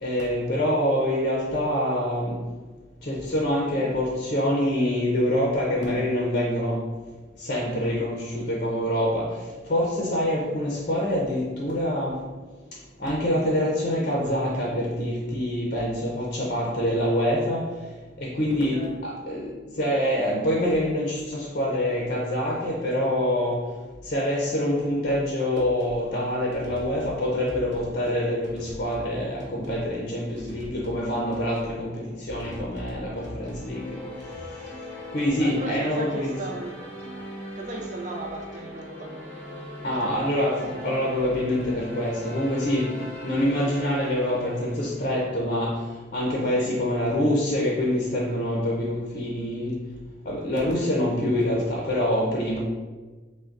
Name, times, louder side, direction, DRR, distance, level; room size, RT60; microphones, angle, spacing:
voice 1, 0.0-2.4 3.0-6.8 7.4-9.4 9.7-12.2 13.0-17.7 18.2-19.5 19.8-23.7 24.1-34.0 35.1-36.3 39.8-43.0 43.2-45.8 46.1-49.8 50.3-52.6, left 1 dB, 45° left, -2 dB, 0.6 m, -25 dB
sound 1, 25.6-26.0 26.5-27.2 27.5-28.0 28.4-29.1 29.4-29.9 30.4-31.0 31.3-31.8 32.3-33.7 34.2-34.4, equal, 65° right, 0.9 m, -43 dB
Plucked string instrument, 32.4-37.4 37.7-39.4 39.9-40.0 40.6-41.8, equal, 85° left, 0.6 m, -49 dB
sound 2, 33.2-45.6, left 1 dB, 5° left, 0.9 m, -41 dB
voice 2, 35.4-36.8 37.6-39.9 46.6-46.8, right 2 dB, 40° right, 1 dB, 0.5 m, -37 dB
5.9 x 2.2 x 2.5 m, 1.3 s
head